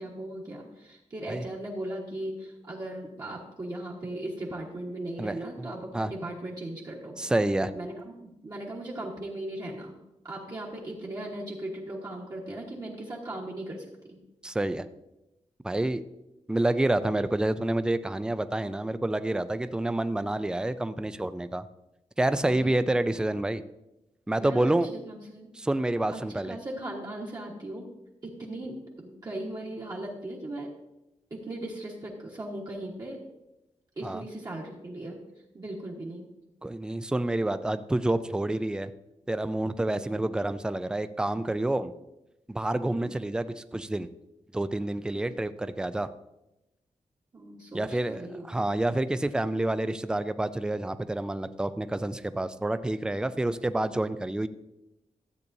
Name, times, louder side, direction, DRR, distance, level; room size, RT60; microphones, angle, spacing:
voice 1, 0.0-7.2 7.7-10.0 10.2-14.2 22.4-22.8 24.3-24.7 25.1-25.5 26.1-26.2 26.5-27.9 28.2-30.7 31.3-33.2 34.0-35.2 35.5-36.3 39.9-40.2 42.8-43.2 47.3-48.5, right 1 dB, 35° right, -5 dB, 1.3 m, -38 dB
voice 2, 5.2-5.7 5.9-6.1 7.2-7.7 14.4-14.9 15.6-16.0 16.5-21.7 22.2-23.6 24.3-24.9 25.5-26.6 34.0-34.2 36.6-38.9 39.3-41.9 42.5-44.1 44.5-46.1 47.7-54.5, right 1 dB, 5° right, 12 dB, 0.3 m, -28 dB
13.5 x 8.4 x 2.7 m, 0.92 s
wide cardioid pair, 165°, 12 cm